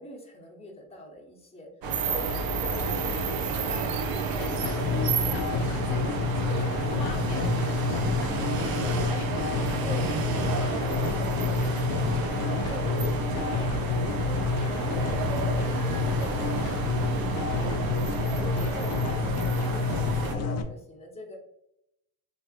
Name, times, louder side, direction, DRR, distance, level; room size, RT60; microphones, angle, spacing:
voice 1, 0.0-1.7 2.0-3.2 3.7-4.0 4.3-4.5 9.8-17.1 17.5-21.4, equal, 15° left, -1 dB, 0.9 m, -43 dB
sound 1, 1.8-20.4, right 4 dB, 55° right, 0.7 m, -31 dB
voice 2, 2.1-4.0 4.2-9.3 9.9-10.0, left 5 dB, 60° left, 2 dB, 0.7 m, -42 dB
sound 2, 4.6-20.6, left 4 dB, 40° left, 0.4 m, -29 dB
3.3 x 3.0 x 2.4 m, 0.82 s
cardioid pair, 95°, 45 cm